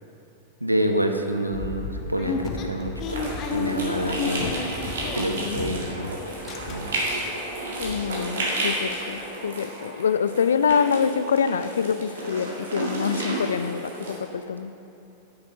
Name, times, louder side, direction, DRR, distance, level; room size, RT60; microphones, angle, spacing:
voice 1, 0.6-3.2 3.5-4.7 5.1-6.3 6.7-7.0, right 1 dB, 85° right, 5 dB, 0.7 m, -27 dB
sound 1, 1.5-6.0 6.3-7.1 7.5-7.6 7.8-8.0, left 4 dB, 35° left, 0.8 m, -32 dB
sound 2, 3.1-14.2, right 1 dB, 60° right, 1.9 m, -32 dB
voice 2, 7.8-14.7, left 6 dB, 70° left, 13 dB, 0.3 m, -25 dB
9.2 x 6.8 x 5.3 m, 2.8 s
figure-of-eight pair, 90°, 0 cm